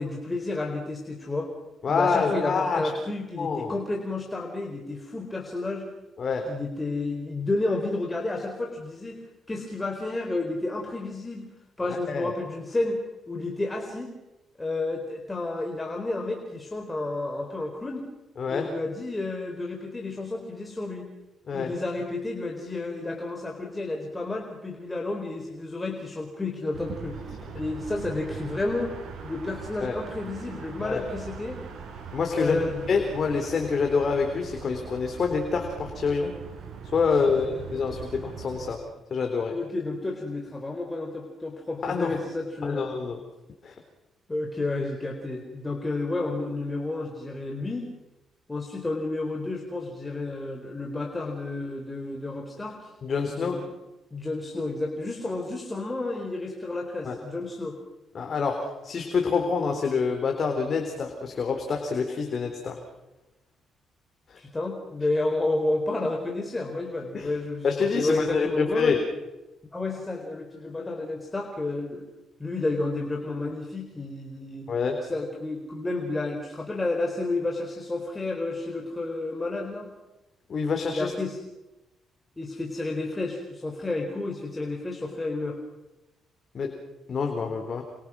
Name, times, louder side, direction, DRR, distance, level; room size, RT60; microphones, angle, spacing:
voice 1, 0.0-1.5 1.9-5.8 6.5-9.2 9.5-11.5 11.8-13.0 13.3-14.1 14.6-18.1 18.5-21.1 21.5-27.2 27.5-29.0 29.2-31.6 32.4-32.9 37.1-37.8 39.5-42.9 44.3-47.9 48.5-52.9 53.3-53.7 54.1-57.8 64.4-67.7 67.9-69.0 69.7-72.0 72.4-74.7 75.0-79.9 80.9-81.4 82.4-85.6, left 2 dB, 15° left, 2 dB, 4.3 m, -31 dB
voice 2, 1.8-2.9 3.4-3.7 6.2-6.5 11.9-12.3 18.4-18.7 21.5-21.7 29.8-29.9 30.8-31.0 32.1-36.3 36.9-38.8 39.1-39.6 41.8-42.2 42.6-43.2 43.6-43.8 53.0-53.6 57.0-57.2 58.1-62.8 64.3-64.4 67.1-67.3 67.6-69.0 74.7-75.0 80.5-81.1 86.5-86.7 87.1-87.8, left 5 dB, 50° left, 4 dB, 3.9 m, -27 dB
sound 1, 26.7-38.7, right 6 dB, 65° right, 7.2 m, -41 dB
29.0 x 25.5 x 6.3 m, 1.0 s
cardioid pair, 90°, 0 cm